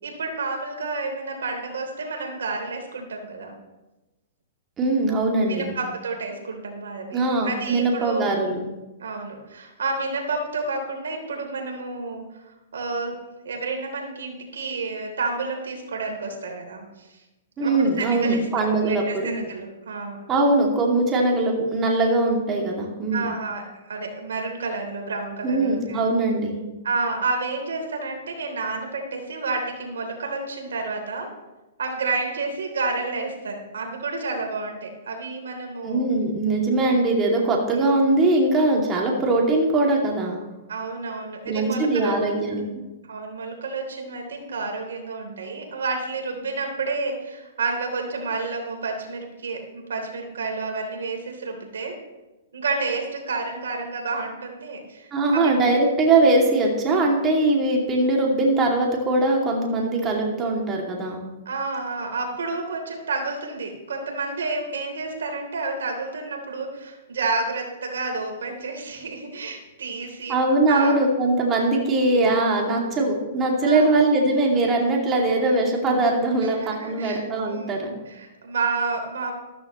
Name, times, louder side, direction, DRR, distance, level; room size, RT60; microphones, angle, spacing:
voice 1, 0.0-3.5 5.5-8.3 9.0-12.2 12.7-13.1 13.4-17.2 17.6-20.2 23.1-26.1 26.8-31.3 31.8-36.0 40.7-42.5 43.1-52.0 52.5-55.4 61.4-70.4 70.7-71.0 73.6-74.0 76.4-79.5, right 3 dB, 85° right, 3 dB, 3.3 m, -30 dB
voice 2, 4.8-5.7 7.1-8.6 17.6-19.3 20.3-23.3 25.4-26.6 35.8-40.4 41.4-42.6 55.1-61.2 70.3-77.9, right 2 dB, 25° right, -1 dB, 2.4 m, -21 dB
13.5 x 13.5 x 3.1 m, 1.0 s
hypercardioid pair, 140°, 0 cm